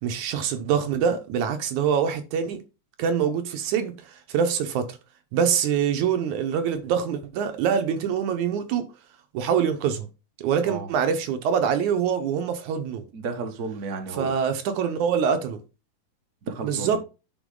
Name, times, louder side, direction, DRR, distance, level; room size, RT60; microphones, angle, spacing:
voice 1, 0.0-2.6 3.0-5.0 5.3-8.8 9.3-10.1 10.4-13.0 14.2-15.6 16.6-17.0, right 7 dB, 75° right, 2.3 m, -24 dB
voice 2, 13.1-14.4 16.4-17.0, right 4 dB, 45° right, 1.2 m, -33 dB
11.0 x 4.6 x 3.8 m
omnidirectional pair, 3.6 m